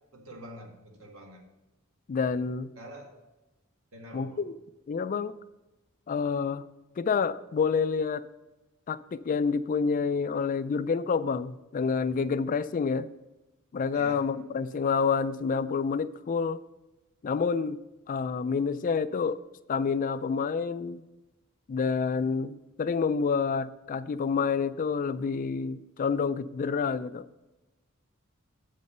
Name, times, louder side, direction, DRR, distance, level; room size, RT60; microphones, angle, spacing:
voice 1, 0.1-1.4 2.8-3.2 3.9-4.4 13.9-14.3, equal, 85° right, 1 dB, 1.8 m, -46 dB
voice 2, 2.1-2.7 4.1-4.5 4.9-5.3 6.1-6.6 7.0-8.2 8.9-13.1 13.7-16.6 17.2-17.8 18.1-19.4 19.7-21.0 21.7-27.3, left 5 dB, 40° left, 15 dB, 0.3 m, -28 dB
8.4 x 5.3 x 6.5 m, 1.0 s
head